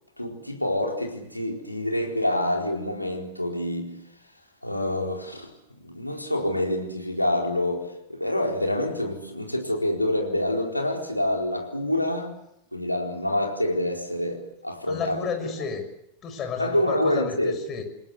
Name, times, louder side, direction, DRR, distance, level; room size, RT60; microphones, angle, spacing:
voice 1, 0.2-3.9 4.6-5.5 5.8-12.3 12.7-15.3 16.6-17.6, left 1 dB, 90° left, 4.3 m, -27 dB
voice 2, 14.9-15.8 16.2-17.8, left 6 dB, 30° left, 6.4 m, -32 dB
28.5 x 21.0 x 8.2 m
figure-of-eight pair, 90°, 0 cm